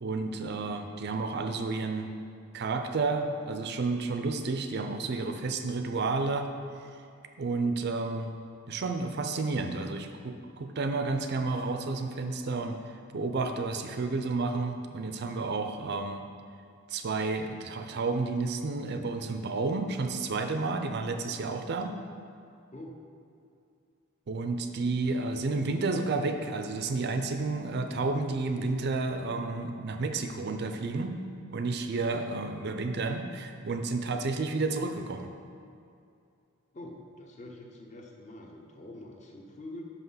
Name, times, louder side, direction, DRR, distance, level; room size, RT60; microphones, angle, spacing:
voice 1, 0.0-2.1 2.5-6.5 7.4-8.3 8.7-12.8 13.1-16.2 16.9-21.9 24.3-31.2 31.5-35.3, right 3 dB, 50° right, 6 dB, 0.5 m, -31 dB
voice 2, 36.7-39.8, left 1 dB, 35° left, 0 dB, 0.9 m, -45 dB
5.8 x 5.6 x 5.7 m, 2.4 s
head